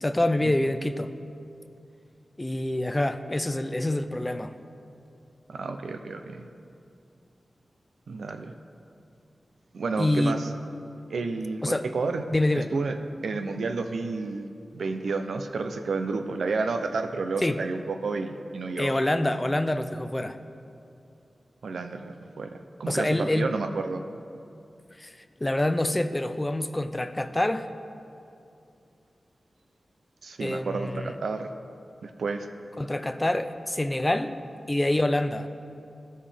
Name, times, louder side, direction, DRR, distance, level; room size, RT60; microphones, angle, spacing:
voice 1, 0.0-1.1 2.4-4.5 10.0-10.3 11.6-11.9 12.3-12.7 17.4-17.6 18.8-20.4 22.9-23.5 25.0-27.7 30.4-31.1 32.8-34.4 34.7-35.5, left 1 dB, 20° left, 9 dB, 0.4 m, -26 dB
voice 2, 5.5-6.5 8.1-8.5 9.7-10.5 11.1-12.2 12.5-12.9 13.2-14.5 14.7-18.9 21.6-22.5 22.8-24.0 30.2-31.5 32.0-32.5, right 4 dB, 90° right, 6 dB, 0.5 m, -31 dB
14.5 x 5.4 x 3.4 m, 2.6 s
cardioid pair, 60°, 0 cm